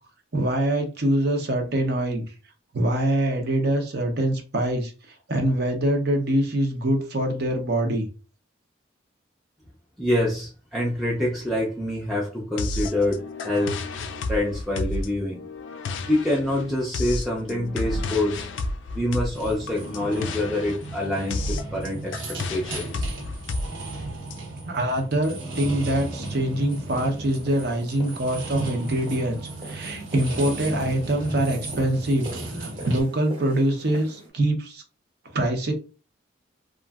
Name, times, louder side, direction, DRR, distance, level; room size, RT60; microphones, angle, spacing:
voice 1, 0.3-2.2 2.7-4.9 5.3-8.1 24.7-32.3 32.6-34.8 35.3-35.7, right 1 dB, 55° right, 4 dB, 0.7 m, -24 dB
voice 2, 10.0-13.8 14.3-15.4 16.1-18.5 18.9-23.1, left 1 dB, ahead, -5 dB, 0.4 m, -26 dB
sound 1, 12.6-24.3, left 2 dB, 65° left, 0.3 m, -32 dB
sound 2, 19.3-33.0, right 2 dB, 80° right, 1.0 m, -35 dB
sound 3, 25.1-34.3, right 2 dB, 30° right, 0.8 m, -44 dB
2.9 x 2.5 x 2.3 m, 0.34 s
head